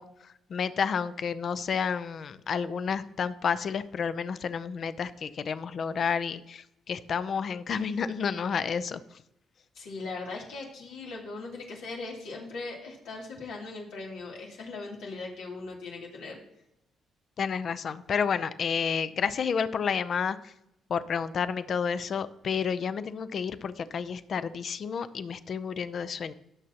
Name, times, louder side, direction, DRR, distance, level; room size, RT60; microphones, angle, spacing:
voice 1, 0.0-9.0 17.4-20.5 20.9-26.3, left 6 dB, 55° left, 14 dB, 0.6 m, -30 dB
voice 2, 9.7-16.4, left 3 dB, 90° left, -3 dB, 2.8 m, -39 dB
18.0 x 6.4 x 2.9 m, 0.81 s
cardioid pair, 90°, 0 cm